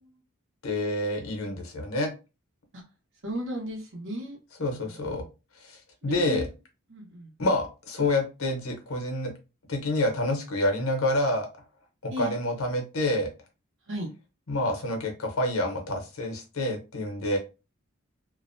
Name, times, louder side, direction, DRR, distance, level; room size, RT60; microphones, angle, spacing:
voice 1, 0.6-2.1 4.6-5.2 5.6-5.8 6.0-6.5 7.4-9.3 9.7-11.5 12.0-13.3 14.5-17.4, left 1 dB, 75° left, 3 dB, 0.8 m, -28 dB
voice 2, 3.2-4.4 4.8-5.3 6.1-6.4 6.9-7.3 12.1-12.3 13.9-14.1, equal, 60° right, 0 dB, 1.0 m, -35 dB
2.5 x 2.2 x 2.5 m, 0.29 s
head